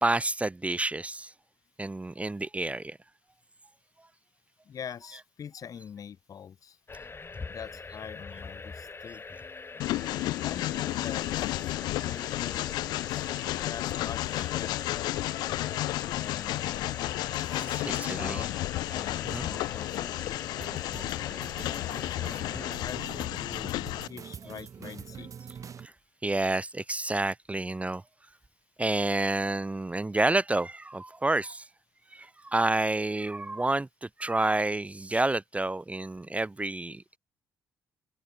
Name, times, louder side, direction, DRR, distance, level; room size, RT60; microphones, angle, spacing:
voice 1, 0.0-1.3 1.8-3.0 17.4-18.5 18.9-19.7 20.9-21.0 25.8-25.9 26.2-28.0 28.8-31.7 32.1-37.2, right 2 dB, 20° right, 1.2 m, -29 dB
voice 2, 4.7-6.8 7.5-9.2 10.4-11.3 12.0-13.2 13.6-14.8 16.2-16.9 17.4-20.4 21.7-22.5 22.8-23.7 24.1-25.3, left 8 dB, 55° left, 1.9 m, -44 dB
sound 1, 6.9-22.8, left 4 dB, 30° left, 5.3 m, -44 dB
Train, 9.8-24.1, left 17 dB, 75° left, 0.7 m, -32 dB
sound 2, 20.6-25.9, right 7 dB, 50° right, 1.2 m, -45 dB
open air
hypercardioid pair, 55°, 7 cm